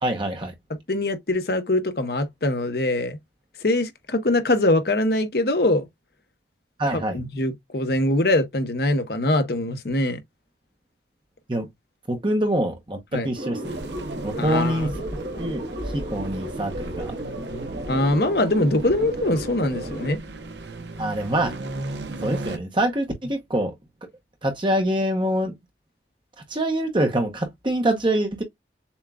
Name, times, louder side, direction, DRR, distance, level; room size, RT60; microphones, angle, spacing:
voice 1, 0.0-0.5 6.8-7.2 11.5-11.7 12.1-13.8 14.2-15.6 15.9-17.1 21.0-21.5 22.2-23.7 24.4-25.5 26.5-28.4, right 1 dB, 25° right, 0.8 m, -25 dB
voice 2, 0.7-3.2 3.6-5.8 6.9-10.2 13.1-13.3 14.4-14.9 17.9-20.2, left 1 dB, 55° left, 0.9 m, -23 dB
sound 1, 13.3-20.2, right 1 dB, 55° right, 1.3 m, -34 dB
sound 2, 13.6-22.6, right 2 dB, 75° right, 1.0 m, -36 dB
7.0 x 2.3 x 2.3 m
head